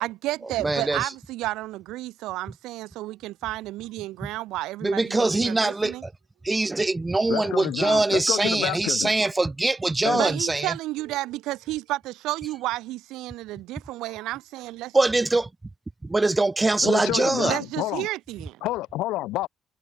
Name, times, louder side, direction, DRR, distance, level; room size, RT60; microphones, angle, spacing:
voice 1, 0.0-6.0 9.2-9.3 10.1-14.9 17.4-18.6, right 17 dB, 75° right, 0.9 m, -32 dB
voice 2, 0.6-1.1 4.8-5.9 6.4-10.7 14.9-15.5 16.0-17.6, right 2 dB, 20° right, 0.6 m, -23 dB
voice 3, 7.3-9.1 10.0-10.2 16.8-18.1 18.6-19.5, left 17 dB, 75° left, 0.7 m, -29 dB
hypercardioid pair, 55°, 0 cm